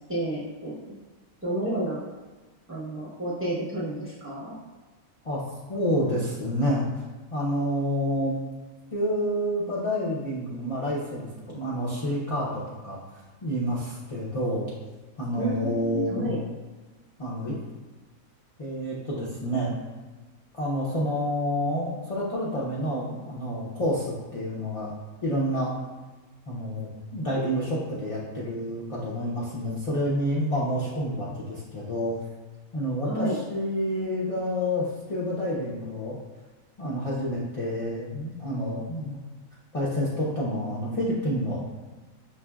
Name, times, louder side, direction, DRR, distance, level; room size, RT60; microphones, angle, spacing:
voice 1, 0.1-0.9 1.4-2.0 2.7-4.5 15.4-16.4 33.0-33.4, right 1 dB, 10° right, -6 dB, 0.7 m, -30 dB
voice 2, 5.7-6.8 7.3-8.4 8.9-13.0 13.4-14.7 15.2-16.3 17.2-17.6 18.6-19.8 20.5-24.9 25.2-25.7 26.5-32.1 32.7-36.2 36.8-39.2 39.7-41.6, equal, 55° left, -7 dB, 0.3 m, -28 dB
5.8 x 2.5 x 2.3 m, 1.3 s
omnidirectional pair, 1.5 m